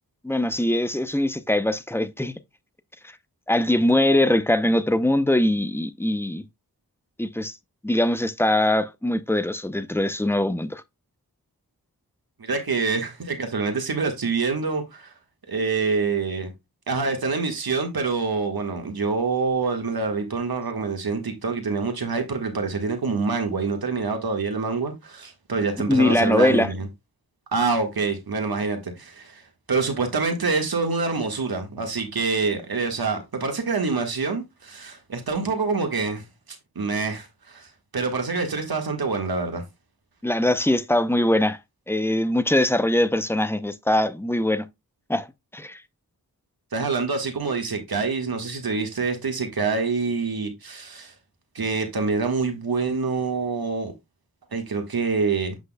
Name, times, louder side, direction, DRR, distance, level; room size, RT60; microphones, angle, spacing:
voice 1, 0.2-2.3 3.5-6.5 7.2-7.6 7.8-10.8 25.8-26.7 40.2-41.6 41.9-44.7 45.1-45.3 45.5-45.8, left 1 dB, 5° left, 0.6 m, -22 dB
voice 2, 12.4-15.1 15.5-16.5 16.9-26.9 27.5-36.3 36.8-39.6 46.7-51.1 51.6-53.9 54.5-55.6, right 4 dB, 80° right, 1.7 m, -26 dB
8.0 x 6.1 x 2.3 m
wide cardioid pair, 75°, 36 cm